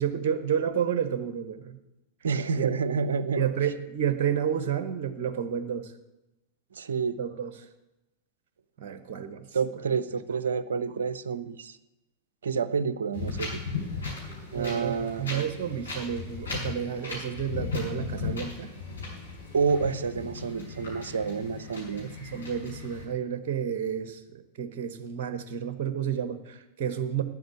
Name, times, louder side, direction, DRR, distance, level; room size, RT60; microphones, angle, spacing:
voice 1, 0.0-1.8 2.6-2.7 3.3-5.9 7.2-7.5 8.8-9.5 14.5-18.7 22.0-27.2, right 8 dB, 45° right, 10 dB, 1.0 m, -30 dB
voice 2, 2.2-3.5 6.7-7.2 9.5-11.8 12.4-13.6 14.5-15.3 19.5-22.1, right 5 dB, 65° right, 14 dB, 0.6 m, -29 dB
Wind, 13.1-23.0, left 4 dB, 75° left, 4.1 m, -37 dB
9.5 x 7.8 x 8.9 m, 0.96 s
figure-of-eight pair, 90°, 0 cm